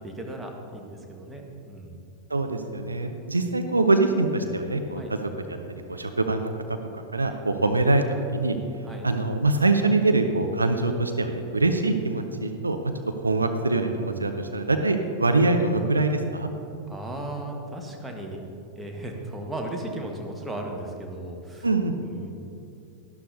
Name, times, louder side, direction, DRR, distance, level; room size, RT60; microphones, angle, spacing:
voice 1, 0.0-2.1 5.0-5.1 7.6-7.7 8.8-9.1 16.9-18.5 18.8-21.7 22.0-22.3, right 1 dB, 10° right, 1 dB, 1.4 m, -36 dB
voice 2, 2.3-5.2 5.5-6.6 6.9-8.0 8.3-8.6 9.0-12.9 13.2-16.5 21.6-21.9, right 2 dB, 80° right, 6 dB, 0.6 m, -24 dB
12.0 x 11.5 x 2.7 m, 2.7 s
figure-of-eight pair, 90°, 0 cm